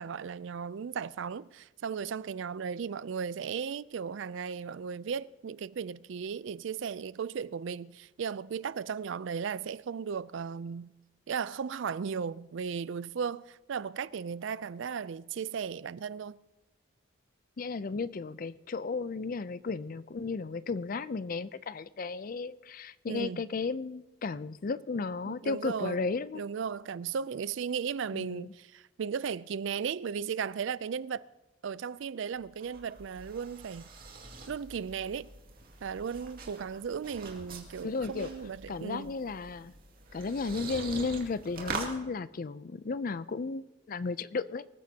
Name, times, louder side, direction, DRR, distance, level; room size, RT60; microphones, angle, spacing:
voice 1, 0.0-10.9 11.3-16.4 23.1-23.4 25.2-26.0 26.3-31.3 31.6-33.9 34.5-35.3 35.8-39.1, right 6 dB, 65° right, 0.4 m, -36 dB
voice 2, 17.6-26.4 28.1-28.5 37.8-38.3 38.7-39.7 40.1-44.7, left 4 dB, 45° left, 0.4 m, -34 dB
sound 1, 32.3-41.9, right 4 dB, 45° right, 2.3 m, -44 dB
24.0 x 14.5 x 2.8 m
head